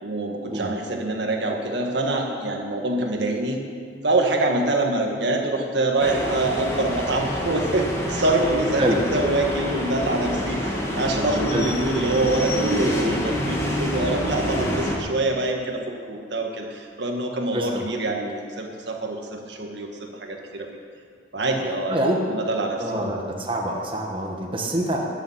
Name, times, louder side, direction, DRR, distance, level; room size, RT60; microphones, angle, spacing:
voice 1, 0.0-3.6 4.0-8.8 9.1-15.8 16.1-20.7 21.3-23.1, right 2 dB, 70° right, 2 dB, 1.6 m, -25 dB
sound 1, 6.0-15.0, equal, 15° left, 1.9 m, -27 dB
voice 2, 17.5-17.8 21.9-22.2 22.8-25.1, right 1 dB, 30° right, 0 dB, 1.4 m, -25 dB
13.0 x 7.1 x 9.8 m, 2.1 s
head